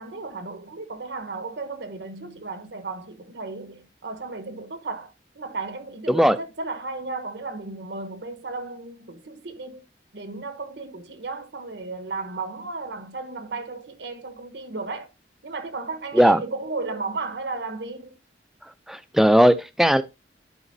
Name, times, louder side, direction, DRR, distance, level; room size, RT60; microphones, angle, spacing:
voice 1, 0.0-9.8 10.1-15.1 15.4-18.2, right 3 dB, 75° right, 1.0 m, -34 dB
voice 2, 18.9-20.0, equal, ahead, 0.4 m, -17 dB
11.0 x 5.0 x 2.6 m
head